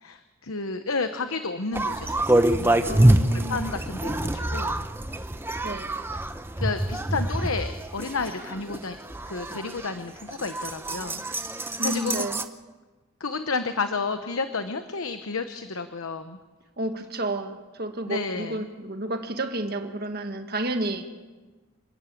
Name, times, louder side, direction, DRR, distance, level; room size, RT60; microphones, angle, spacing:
voice 1, 0.0-3.0 3.5-4.8 6.6-9.0 9.3-11.2 11.5-12.3 13.2-16.4 18.0-18.7, left 4 dB, 75° left, 9 dB, 1.0 m, -31 dB
sound 1, 1.7-12.4, right 1 dB, 10° right, 0.7 m, -26 dB
voice 2, 2.8-3.6 5.6-5.9 11.8-12.4 16.8-21.0, right 1 dB, 45° right, 6 dB, 1.7 m, -31 dB
27.0 x 12.0 x 8.5 m, 1.3 s
head